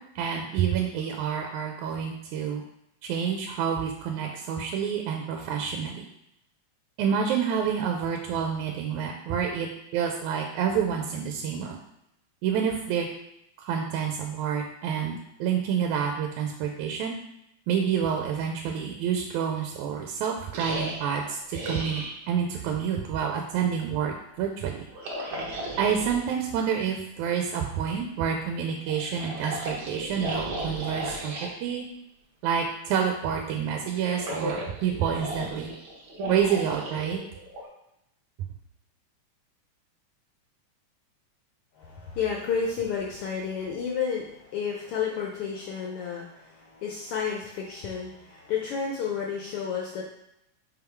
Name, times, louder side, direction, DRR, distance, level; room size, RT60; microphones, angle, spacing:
voice 1, 0.0-2.6 3.0-6.1 7.0-11.8 12.4-13.1 13.6-17.2 17.7-24.8 25.8-31.3 31.6-31.9 32.4-35.7 36.3-37.2, right 7 dB, 90° right, 2 dB, 2.0 m, -28 dB
sound 1, 20.5-22.2 24.9-26.3 28.9-31.5 33.8-37.7, right 1 dB, 55° right, 1.4 m, -35 dB
voice 2, 41.8-50.1, left 6 dB, 80° left, -1 dB, 1.3 m, -31 dB
5.4 x 3.8 x 4.6 m, 0.82 s
omnidirectional pair, 3.4 m